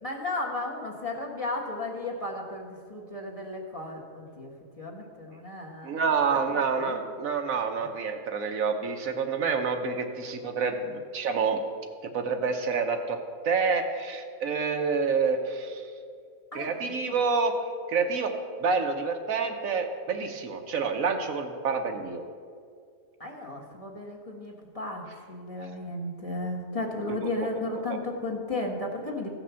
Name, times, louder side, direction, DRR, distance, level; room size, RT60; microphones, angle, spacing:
voice 1, 0.0-4.5 4.8-7.0 7.8-7.9 16.5-17.2 23.2-29.3, left 2 dB, 25° left, -1 dB, 1.5 m, -35 dB
voice 2, 5.8-11.6 12.0-13.2 13.4-15.8 16.5-17.5 17.9-18.3 18.6-22.2 27.1-27.2, right 5 dB, 75° right, 5 dB, 1.3 m, -28 dB
15.0 x 6.0 x 6.9 m, 2.1 s
omnidirectional pair, 1.5 m